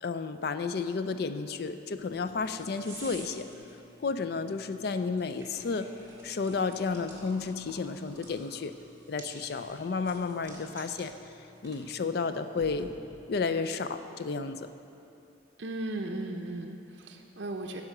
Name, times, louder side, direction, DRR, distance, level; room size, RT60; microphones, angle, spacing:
voice 1, 0.0-3.5 4.0-5.9 6.2-8.7 9.1-11.1 11.6-12.9 13.3-14.7, left 4 dB, 55° left, 10 dB, 0.4 m, -32 dB
sound 1, 1.9-13.4, right 1 dB, 15° right, 1.5 m, -51 dB
voice 2, 15.6-17.8, right 2 dB, 70° right, 2 dB, 0.6 m, -36 dB
9.5 x 5.0 x 6.5 m, 2.8 s
head